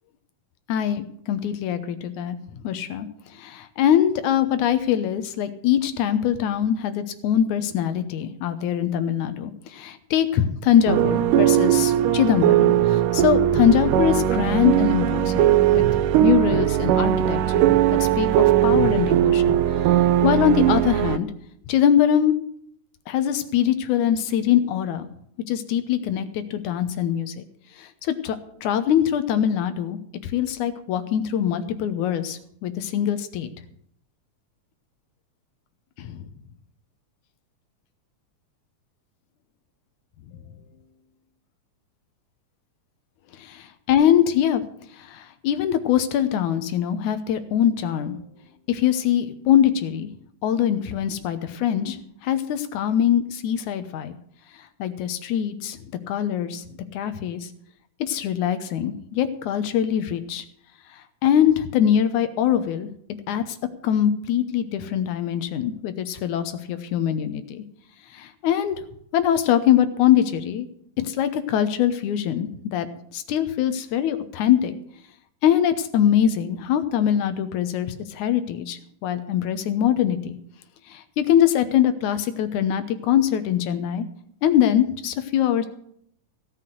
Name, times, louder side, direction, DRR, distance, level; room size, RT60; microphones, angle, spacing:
voice 1, 0.7-3.1 3.4-15.8 16.2-19.6 20.2-21.3 21.7-22.3 23.1-25.1 25.5-27.4 27.8-28.4 28.6-33.5 36.0-36.2 43.4-44.6 45.0-48.1 48.7-50.1 50.4-52.0 52.2-54.1 54.8-55.8 56.1-56.6 56.9-57.5 58.0-60.4 61.2-62.9 63.3-63.6 63.8-67.6 68.1-68.8 69.1-70.7 71.0-74.7 75.4-80.4 80.9-84.1 84.4-85.7, left 10 dB, 75° left, 10 dB, 2.3 m, -23 dB
sound 1, 10.9-21.2, right 12 dB, 90° right, 2.3 m, -19 dB
16.5 x 5.9 x 7.8 m, 0.69 s
omnidirectional pair, 3.7 m